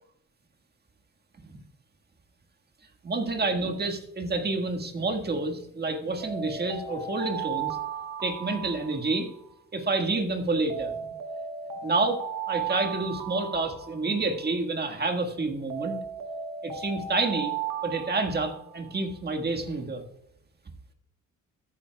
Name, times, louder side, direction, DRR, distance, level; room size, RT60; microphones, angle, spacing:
voice 1, 3.0-7.8 8.2-9.3 9.7-11.0 11.8-12.2 12.5-16.0 16.6-17.5 17.8-20.0, right 3 dB, 35° right, 4 dB, 1.6 m, -28 dB
Alarm, 6.2-9.5 10.7-14.5 15.7-19.0, right 7 dB, 85° right, 1.1 m, -35 dB
14.0 x 9.3 x 2.3 m, 0.82 s
cardioid pair, 90°, 30 cm